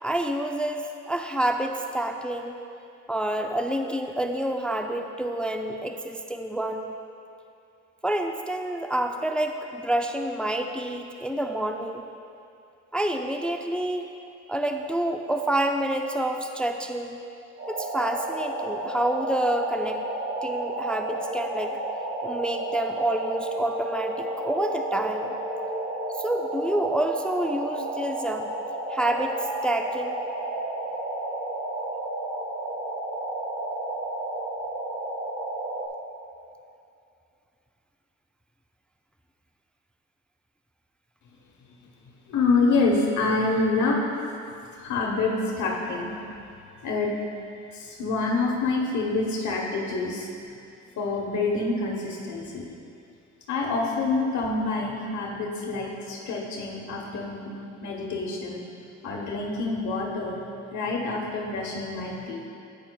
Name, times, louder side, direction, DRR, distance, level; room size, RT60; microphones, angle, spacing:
voice 1, 0.0-2.6 3.1-6.9 8.0-12.0 12.9-14.1 14.5-17.2 17.7-20.0 20.4-21.8 22.2-25.3 26.1-28.5 28.9-29.4 29.6-30.2, right 1 dB, 5° left, 4 dB, 0.3 m, -28 dB
sound 1, 17.6-35.9, right 1 dB, 55° right, 1.8 m, -32 dB
voice 2, 42.3-44.0 44.6-46.2 46.8-47.1 47.7-50.3 51.0-52.7 53.5-57.6 57.8-58.6 59.0-60.4 60.7-62.5, left 3 dB, 70° left, -1 dB, 1.1 m, -27 dB
10.5 x 8.7 x 2.3 m, 2.6 s
cardioid pair, 90°, 30 cm